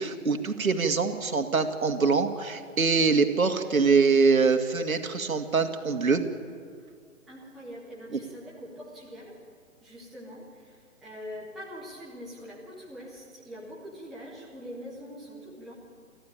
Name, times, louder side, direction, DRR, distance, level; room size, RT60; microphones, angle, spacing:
voice 1, 0.0-6.2 8.1-8.2, right 4 dB, 75° right, 6 dB, 2.3 m, -24 dB
voice 2, 7.3-9.4 9.8-15.7, equal, ahead, -5 dB, 0.7 m, -43 dB
29.5 x 12.5 x 8.8 m, 2.2 s
figure-of-eight pair, 150°, 41 cm